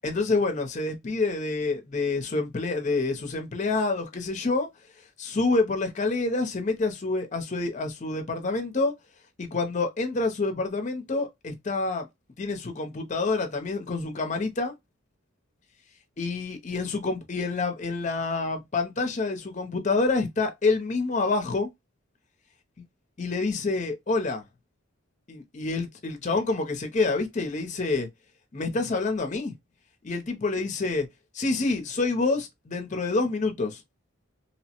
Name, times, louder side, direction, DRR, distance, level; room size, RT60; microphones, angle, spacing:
voice 1, 0.0-4.7 5.2-8.9 9.4-12.1 12.4-14.7 16.2-21.7 23.2-24.4 25.3-28.1 28.5-29.5 30.0-31.1 31.3-33.8, left 3 dB, 35° left, 0.6 m, -27 dB
2.9 x 2.0 x 2.8 m
head